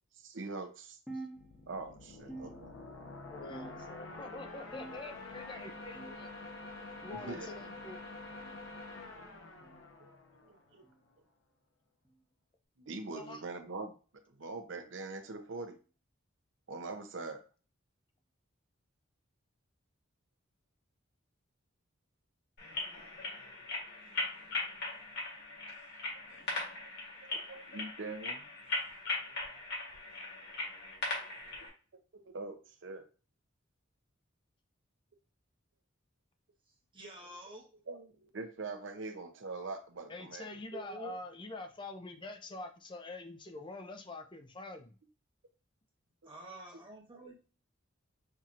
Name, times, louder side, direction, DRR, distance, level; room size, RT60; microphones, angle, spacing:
voice 1, 0.2-1.0 1.7-2.7 7.1-7.7 10.0-10.2 10.4-10.8 12.8-13.9 14.3-15.8 16.7-17.4 23.0-23.1 26.4-26.9 27.2-28.5 32.1-33.1 37.9-40.5 46.2-46.3, right 3 dB, 65° right, 7 dB, 0.7 m, -43 dB
sound 1, 1.1-1.9 2.3-3.1 3.5-4.1 4.7-5.3 5.9-6.3 7.2-7.4 8.4-8.6 9.6-9.8 10.8-11.0 12.0-12.2 13.3-13.4 14.5-14.6 15.7-15.8, right 2 dB, 5° right, 1.0 m, -49 dB
sound 2, 1.4-10.9, left 2 dB, 75° left, 0.9 m, -47 dB
voice 2, 3.3-6.3 7.0-8.0 13.1-13.4 40.1-45.0, left 2 dB, 25° left, 6 dB, 0.5 m, -45 dB
sound 3, 22.6-31.7, left 2 dB, 60° left, 1.8 m, -39 dB
voice 3, 36.9-37.7 40.7-41.2 46.2-47.3, right 2 dB, 25° right, -1 dB, 1.2 m, -47 dB
5.7 x 2.8 x 2.5 m, 0.36 s
head